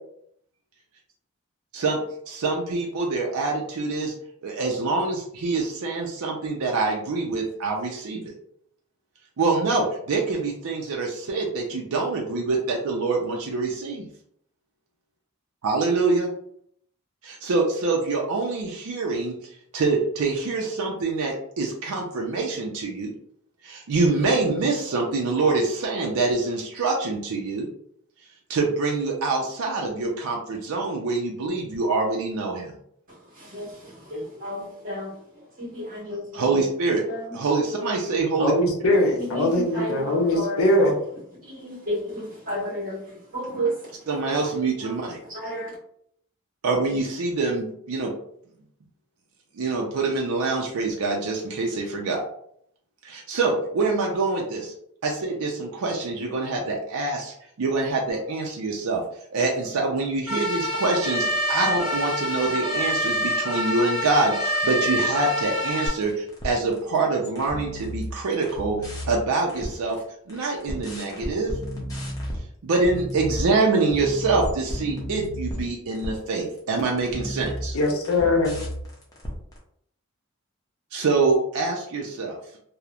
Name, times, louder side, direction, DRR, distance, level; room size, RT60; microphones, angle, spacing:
voice 1, 2.3-4.1 4.4-8.3 9.4-14.1 15.6-16.3 17.2-19.3 19.7-23.1 23.6-27.7 28.5-32.7 36.4-37.0 37.3-38.5 38.8-38.9 44.1-45.2 46.6-48.1 49.6-52.2 53.0-54.7 55.0-59.0 59.3-70.0 70.3-71.5 72.6-77.8 80.9-82.4, right 3 dB, 80° right, 0.4 m, -25 dB
voice 2, 33.1-36.6 37.1-37.4 37.7-38.0 39.2-44.4 44.8-45.0 45.3-45.8, equal, 40° right, 1.4 m, -33 dB
voice 3, 38.4-40.9 77.7-78.6, left 1 dB, 75° left, 0.6 m, -21 dB
sound 1, 60.3-65.9, equal, 20° right, 1.2 m, -26 dB
sound 2, 66.0-67.0 67.2-70.0 70.3-72.4 72.8-73.5 73.9-79.6, equal, 15° left, 0.5 m, -33 dB
2.9 x 2.0 x 2.3 m
head